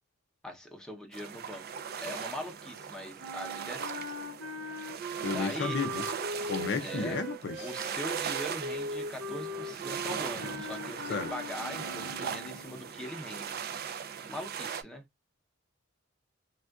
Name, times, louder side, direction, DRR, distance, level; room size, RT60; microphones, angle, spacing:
voice 1, 0.4-1.6 2.0-4.0 5.3-5.8 6.8-7.2 7.6-13.5 14.2-15.0, left 1 dB, 5° left, 0.7 m, -41 dB
sound 1, 1.1-14.8, right 7 dB, 50° right, 0.4 m, -39 dB
sound 2, 3.2-12.7, equal, 85° right, 0.8 m, -40 dB
voice 2, 5.2-6.0 6.4-7.7 11.1-11.3, left 4 dB, 60° left, 0.5 m, -32 dB
3.4 x 2.4 x 2.3 m
head